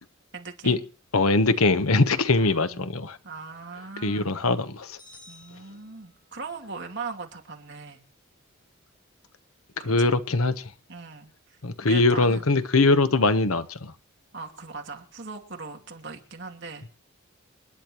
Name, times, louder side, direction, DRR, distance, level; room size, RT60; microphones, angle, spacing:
voice 1, 0.3-0.8 2.4-2.9 3.2-4.3 5.3-8.0 9.8-10.4 10.9-11.6 11.9-12.4 14.3-16.9, right 4 dB, 55° right, 2.7 m, -39 dB
voice 2, 1.1-3.2 4.0-5.0 9.8-10.7 11.6-13.9, left 3 dB, 90° left, 1.1 m, -22 dB
sound 1, 5.0-6.5, left 2 dB, 25° left, 5.6 m, -52 dB
28.5 x 10.5 x 3.1 m
head